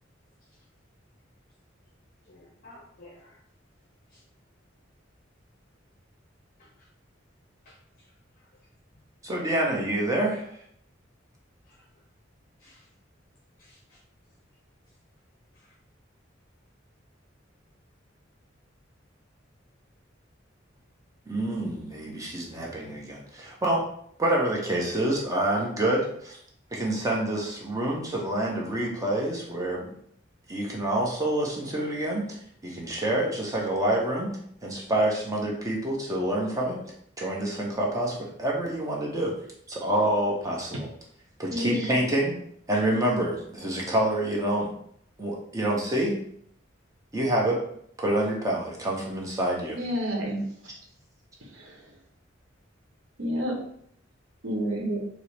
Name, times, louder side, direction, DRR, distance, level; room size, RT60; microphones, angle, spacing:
voice 1, 2.3-3.4 4.1-4.2 6.6-6.9 7.7-7.8 11.7-11.8 12.6-12.9 13.6-14.0 15.5-15.7, left 1 dB, 50° left, -3 dB, 0.6 m, -54 dB
voice 2, 9.2-10.5 21.3-23.8 24.2-26.4 26.7-30.0 30.5-32.3 32.6-36.8 37.2-39.3 39.7-40.9 41.4-42.3 42.7-44.7 45.2-46.2 47.1-47.6 48.0-49.8 50.7-50.8, right 1 dB, 15° right, -2 dB, 0.7 m, -27 dB
voice 3, 41.5-41.8 49.8-50.4 51.5-51.8 53.2-53.5 54.4-55.0, equal, 85° right, -1 dB, 0.9 m, -29 dB
4.2 x 2.0 x 3.2 m, 0.67 s
head